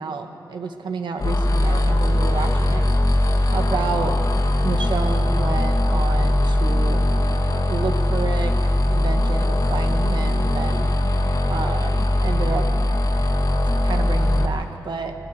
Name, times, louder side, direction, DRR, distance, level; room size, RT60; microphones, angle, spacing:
voice 1, 0.0-2.8 3.5-4.1 4.6-7.0 7.7-10.9 11.5-12.7 13.8-15.1, right 4 dB, 85° right, 5 dB, 1.6 m, -29 dB
sound 1, 1.2-14.5, left 1 dB, 55° left, 2.0 m, -20 dB
24.0 x 18.0 x 6.7 m, 3.0 s
wide cardioid pair, 95°, 8 cm